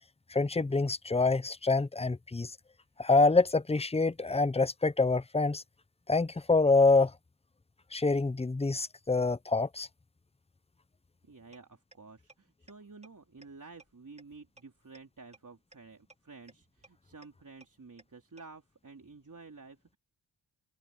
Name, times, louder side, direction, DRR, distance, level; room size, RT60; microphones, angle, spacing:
voice 1, 0.3-2.5 3.0-5.6 6.1-7.1 7.9-9.9, left 3 dB, 15° left, 0.6 m, -26 dB
voice 2, 11.2-20.0, right 4 dB, 40° right, 3.8 m, -52 dB
sound 1, 11.5-11.6 11.9-12.0 12.3-12.4 12.7-12.8 13.0-13.1 13.4-13.5 13.8-13.9 14.2-14.3 14.6-14.7 14.9-15.0 15.3-15.4 15.7-15.8 16.1-16.2 16.5-16.6 16.8-16.9 17.2-17.3 17.6-17.7 18.0-18.1 18.4-18.5, right 2 dB, 15° right, 2.8 m, -55 dB
open air
cardioid pair, 75°, 45 cm